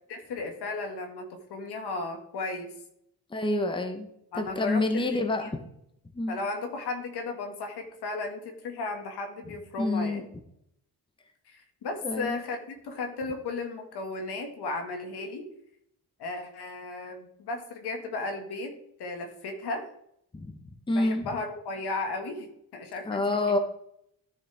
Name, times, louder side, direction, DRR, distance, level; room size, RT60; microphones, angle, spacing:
voice 1, 0.1-2.7 4.3-5.5 6.3-10.3 11.5-15.5 16.2-19.9 20.9-23.6, left 3 dB, 90° left, 4 dB, 1.9 m, -35 dB
voice 2, 3.3-4.1 4.4-5.6 6.1-6.4 9.8-10.2 12.0-12.4 20.3-20.6 20.9-21.3 23.0-23.6, left 2 dB, 15° left, 6 dB, 1.0 m, -27 dB
13.0 x 6.5 x 3.5 m, 0.73 s
wide cardioid pair, 155°, 38 cm